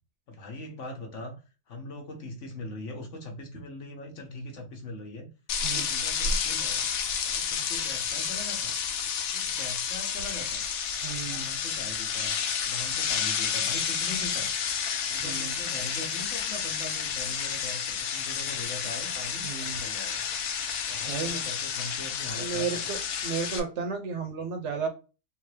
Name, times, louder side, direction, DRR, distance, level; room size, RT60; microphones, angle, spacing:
voice 1, 0.3-5.3 5.6-6.9 7.2-8.7 9.3-10.6 11.2-12.4 12.6-14.5 15.1-20.2 20.9-23.0, left 1 dB, 65° left, 1.2 m, -41 dB
sound 1, 5.5-23.6, left 7 dB, 90° left, 1.1 m, -30 dB
voice 2, 5.6-6.0 11.0-11.5 15.2-15.6 19.4-19.8 21.1-21.4 22.4-23.0 23.2-24.9, right 6 dB, 65° right, 0.9 m, -33 dB
3.7 x 2.4 x 3.1 m
omnidirectional pair, 1.4 m